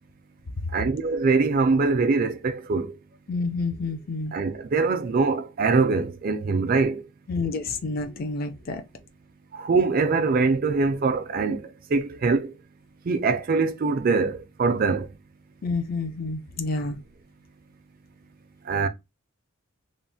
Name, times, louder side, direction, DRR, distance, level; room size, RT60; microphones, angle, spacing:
voice 1, 0.7-3.0 4.3-7.1 9.5-12.5 13.1-15.1 18.7-18.9, right 4 dB, 40° right, 0.4 m, -23 dB
voice 2, 3.3-4.3 7.3-8.8 15.6-17.0, left 3 dB, 45° left, 0.4 m, -29 dB
3.1 x 2.1 x 2.6 m
head